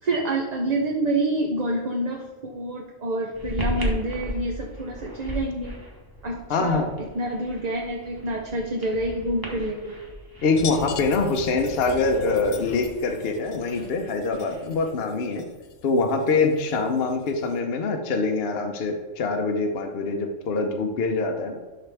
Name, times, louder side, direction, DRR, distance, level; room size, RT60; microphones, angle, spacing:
voice 1, 0.0-5.7 6.2-9.9, right 1 dB, 40° right, 0 dB, 0.8 m, -27 dB
sound 1, 3.3-14.9, equal, 20° right, 1.4 m, -37 dB
voice 2, 6.5-6.9 10.4-15.4 15.8-21.6, left 3 dB, 55° left, 4 dB, 1.0 m, -24 dB
sound 2, 10.5-17.6, left 7 dB, 85° left, 1.0 m, -40 dB
11.5 x 3.9 x 3.4 m, 1.2 s
omnidirectional pair, 1.3 m